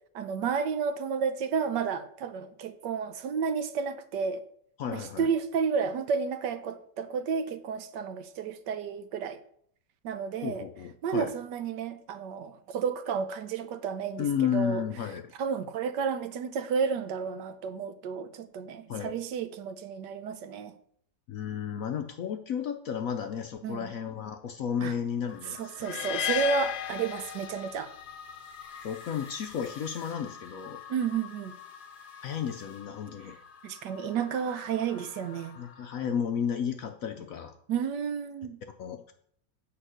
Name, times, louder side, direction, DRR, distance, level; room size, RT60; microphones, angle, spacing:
voice 1, 0.1-4.4 4.9-9.4 10.0-10.7 11.0-14.8 15.4-20.7 23.6-23.9 24.8-24.9 25.4-27.9 30.9-31.6 33.6-35.6 37.7-38.6, right 6 dB, 75° right, 1.3 m, -31 dB
voice 2, 4.8-5.3 10.4-11.3 14.2-15.3 18.9-19.1 21.3-25.6 28.8-30.8 32.2-33.4 35.6-37.5 38.8-39.1, left 8 dB, 70° left, 0.8 m, -33 dB
sound 1, 25.3-36.0, left 7 dB, 40° left, 0.8 m, -48 dB
sound 2, 25.8-28.0, left 11 dB, 85° left, 1.3 m, -33 dB
8.6 x 5.4 x 6.5 m
omnidirectional pair, 1.9 m